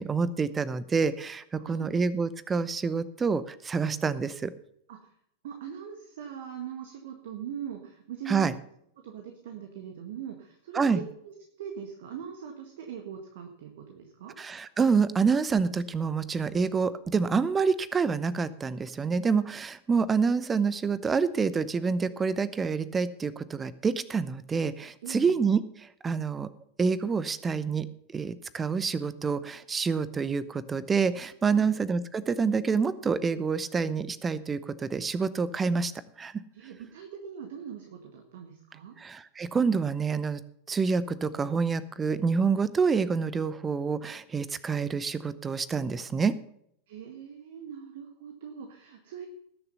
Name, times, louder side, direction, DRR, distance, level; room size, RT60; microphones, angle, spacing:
voice 1, 0.0-4.5 8.3-8.5 10.7-11.0 14.4-25.6 26.0-26.5 26.8-27.9 28.1-35.9 36.2-36.3 39.0-40.4 40.7-46.3, right 5 dB, 15° right, 17 dB, 0.8 m, -27 dB
voice 2, 1.6-2.0 4.9-5.1 5.4-8.5 9.0-14.4 25.0-25.4 31.5-31.8 36.5-38.9 46.9-49.3, right 8 dB, 55° right, 5 dB, 1.8 m, -41 dB
19.0 x 6.9 x 5.6 m, 0.71 s
figure-of-eight pair, 90°, 0 cm